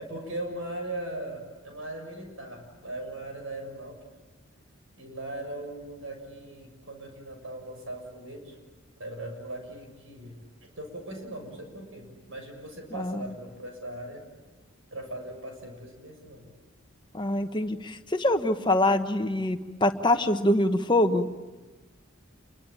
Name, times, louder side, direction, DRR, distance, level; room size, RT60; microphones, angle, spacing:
voice 1, 0.0-4.0 5.0-8.6 9.0-10.4 10.8-14.2 14.9-16.5, right 1 dB, 75° right, 4 dB, 7.1 m, -39 dB
voice 2, 12.9-13.3 17.1-21.3, left 1 dB, 20° left, 7 dB, 1.2 m, -25 dB
29.0 x 23.0 x 8.9 m, 1.2 s
head